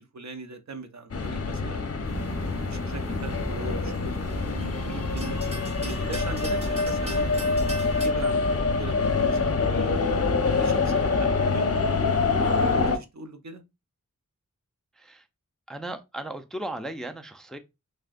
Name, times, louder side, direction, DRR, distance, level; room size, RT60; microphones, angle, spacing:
voice 1, 0.0-1.9 2.6-7.3 8.0-10.0 10.4-12.1 12.6-13.6, right 3 dB, 55° right, 0.6 m, -40 dB
Metro Madrid Room Tone Llegada Distante Barrera Salida, 1.1-13.0, left 4 dB, 45° left, 0.6 m, -26 dB
sound 1, 2.0-8.1, equal, 20° right, 1.4 m, -35 dB
voice 2, 15.0-15.3 15.7-17.6, right 1 dB, ahead, 0.4 m, -36 dB
5.9 x 2.1 x 2.5 m
wide cardioid pair, 70°, 33 cm